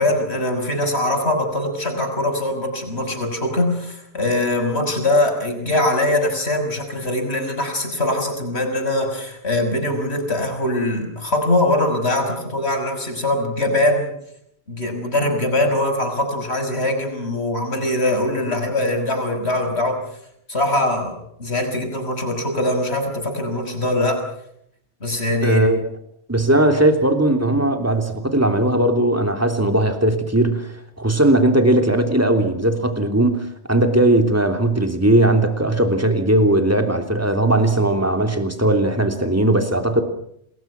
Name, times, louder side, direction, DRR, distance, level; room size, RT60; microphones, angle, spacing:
voice 1, 0.0-14.1 14.7-20.0 20.5-24.2 25.0-25.7, left 1 dB, 70° left, 4 dB, 6.2 m, -22 dB
voice 2, 25.4-25.8 26.3-30.7 31.0-40.0, right 1 dB, 15° right, 5 dB, 3.3 m, -18 dB
28.5 x 21.5 x 6.1 m, 0.72 s
omnidirectional pair, 1.1 m